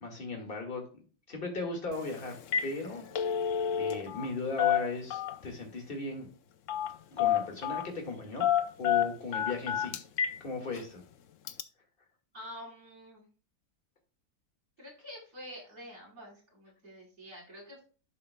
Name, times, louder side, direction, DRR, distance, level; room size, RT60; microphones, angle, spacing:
voice 1, 0.0-0.8 1.3-2.3 2.6-6.3 7.1-8.5 8.8-10.0 10.4-11.0, left 3 dB, 35° left, 3 dB, 2.0 m, -37 dB
Telephone, 1.9-2.1 2.4-2.7 3.0-4.3 4.6-5.5 6.7-6.9 7.2-7.9 8.4-10.4 10.8-10.9 11.5-11.6, left 9 dB, 65° left, 0.8 m, -29 dB
voice 2, 12.3-13.2 14.8-17.8, equal, 65° right, -4 dB, 4.8 m, -47 dB
11.5 x 5.5 x 2.2 m, 0.39 s
omnidirectional pair, 1.8 m